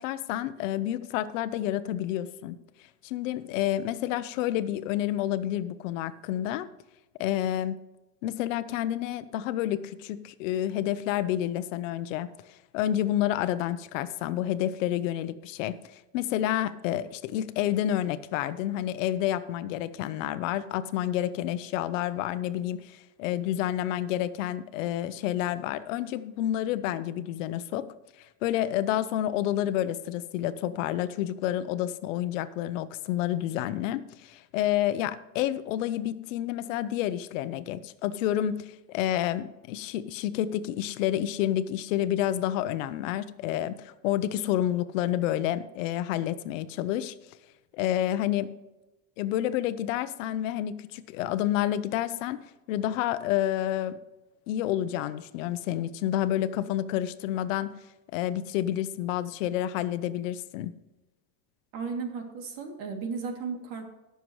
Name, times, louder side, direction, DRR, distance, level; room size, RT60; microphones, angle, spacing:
voice 1, 0.0-2.6 3.0-6.7 7.2-7.8 8.2-27.9 28.4-47.1 47.7-48.5 49.2-52.4 52.7-54.0 54.5-57.7 58.1-60.7, left 12 dB, 90° left, 13 dB, 0.8 m, -29 dB
voice 2, 61.7-63.8, right 5 dB, 60° right, 3 dB, 2.8 m, -34 dB
18.5 x 6.9 x 3.2 m, 0.99 s
supercardioid pair, 135°, 37 cm